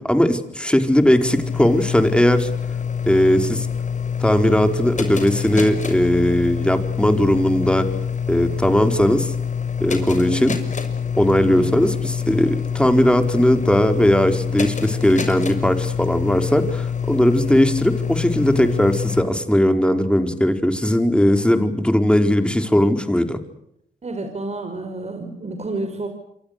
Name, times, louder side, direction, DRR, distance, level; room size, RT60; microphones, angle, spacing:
voice 1, 0.0-2.5 3.0-3.7 4.2-7.9 8.3-9.3 9.8-10.6 11.2-23.4, equal, 5° left, 7 dB, 4.5 m, -18 dB
sound 1, 0.7-19.2, left 7 dB, 40° left, 6.2 m, -26 dB
voice 2, 24.0-26.1, right 2 dB, 35° right, 5 dB, 5.4 m, -30 dB
27.5 x 25.0 x 6.8 m, 0.77 s
cardioid pair, 70°, 18 cm